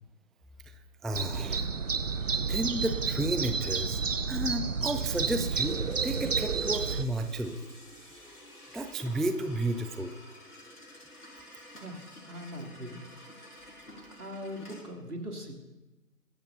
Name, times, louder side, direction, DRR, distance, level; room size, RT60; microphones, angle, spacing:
voice 1, 1.0-1.6 2.4-4.0 4.3-7.6 8.7-10.1, right 1 dB, ahead, 8 dB, 0.4 m, -32 dB
sound 1, 1.1-7.0, right 5 dB, 55° right, 0.8 m, -30 dB
sound 2, 5.1-14.8, left 1 dB, 90° left, 6.1 m, -50 dB
voice 2, 11.8-13.0 13.8-15.5, equal, 75° right, 1 dB, 3.1 m, -41 dB
22.0 x 14.0 x 2.7 m, 1.1 s
figure-of-eight pair, 155°, 45 cm